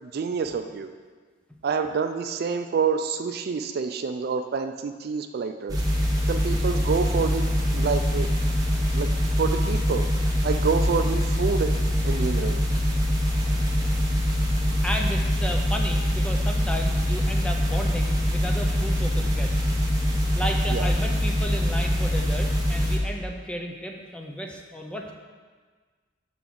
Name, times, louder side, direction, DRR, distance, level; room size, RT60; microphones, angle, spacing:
voice 1, 0.0-0.9 1.6-5.8 6.3-7.4 7.7-8.3 8.9-9.1 9.4-10.0 10.4-12.6 20.7-20.9, right 5 dB, 55° right, 8 dB, 0.3 m, -27 dB
sound 1, 5.7-23.0, left 1 dB, 20° right, 1.0 m, -24 dB
voice 2, 14.8-19.6 20.3-25.1, equal, 5° left, 1 dB, 0.5 m, -33 dB
5.8 x 3.9 x 6.0 m, 1.5 s
head